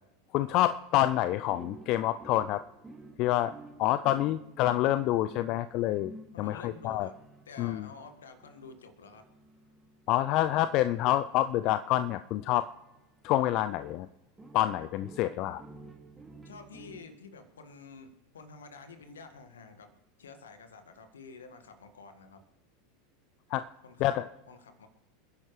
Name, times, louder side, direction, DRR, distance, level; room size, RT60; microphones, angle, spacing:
voice 1, 0.3-2.6 3.2-3.5 3.8-7.1 7.6-7.8 10.1-12.7 13.2-14.1 14.5-15.6 23.5-23.6 24.0-24.3, left 14 dB, 50° left, 13 dB, 0.4 m, -27 dB
sound 1, 1.5-13.6 14.4-17.0, right 2 dB, 15° right, 2.3 m, -52 dB
voice 2, 6.3-7.1 7.4-9.2 16.4-19.9 20.2-22.4 23.8-24.1 24.5-24.9, left 4 dB, 75° left, 7 dB, 1.8 m, -49 dB
28.0 x 10.5 x 3.3 m, 1.0 s
figure-of-eight pair, 85°, 0 cm